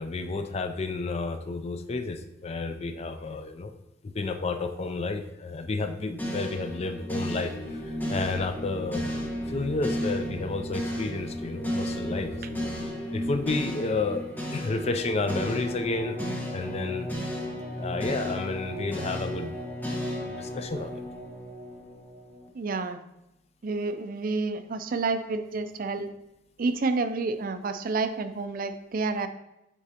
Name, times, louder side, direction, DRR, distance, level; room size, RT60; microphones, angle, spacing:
voice 1, 0.0-3.7 4.0-7.5 7.8-9.0 9.5-12.7 13.1-14.2 14.5-16.2 16.5-17.1 17.8-19.6 20.2-20.9, left 3 dB, 35° left, 8 dB, 0.5 m, -31 dB
sound 1, 6.2-22.5, equal, 10° left, 1.1 m, -34 dB
voice 2, 22.5-23.0 23.6-26.1 26.6-29.3, right 3 dB, 50° right, 10 dB, 0.4 m, -29 dB
8.1 x 4.9 x 2.8 m, 0.89 s
head